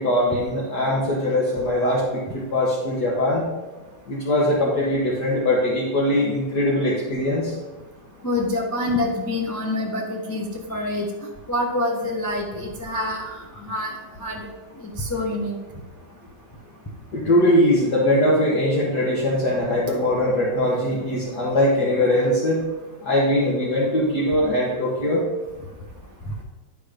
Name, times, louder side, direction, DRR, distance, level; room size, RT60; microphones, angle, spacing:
voice 1, 0.0-3.4 4.1-7.6 17.1-22.6 23.0-25.2, left 1 dB, 55° left, -6 dB, 2.0 m, -21 dB
voice 2, 8.2-11.1 11.5-13.9 14.2-14.5 14.8-15.5, left 1 dB, 20° left, -1 dB, 0.4 m, -26 dB
10.0 x 4.7 x 5.1 m, 1.2 s
omnidirectional pair, 2.2 m